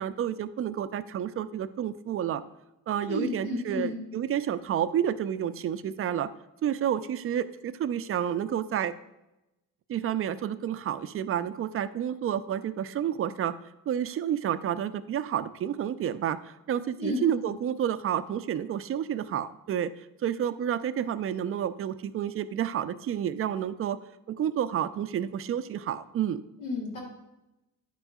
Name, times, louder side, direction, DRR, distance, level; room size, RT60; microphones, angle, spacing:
voice 1, 0.0-2.4 2.9-6.3 6.6-8.9 9.9-13.5 13.9-19.9 20.2-24.0 24.3-26.4, right 9 dB, 35° right, 13 dB, 0.4 m, -30 dB
voice 2, 3.1-4.0 17.0-17.2 26.6-27.0, left 2 dB, 80° left, -1 dB, 1.4 m, -31 dB
11.0 x 5.2 x 2.3 m, 0.92 s
figure-of-eight pair, 45°, 43 cm